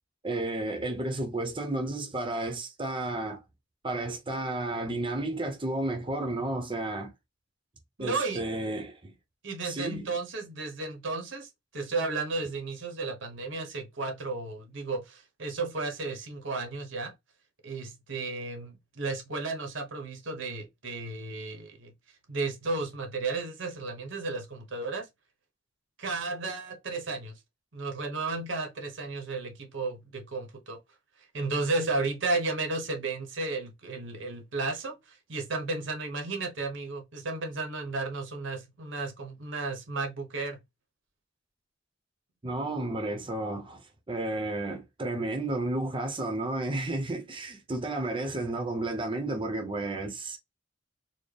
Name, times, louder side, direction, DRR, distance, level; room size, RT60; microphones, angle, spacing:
voice 1, 0.2-3.4 3.8-7.1 8.0-9.1 9.6-10.1 42.4-50.4, right 2 dB, 25° right, 0.7 m, -32 dB
voice 2, 8.0-8.4 9.4-17.1 17.6-21.9 22.3-25.1 26.0-27.4 27.7-30.8 31.3-40.6, right 3 dB, 75° right, 1.1 m, -33 dB
4.2 x 2.1 x 3.3 m
head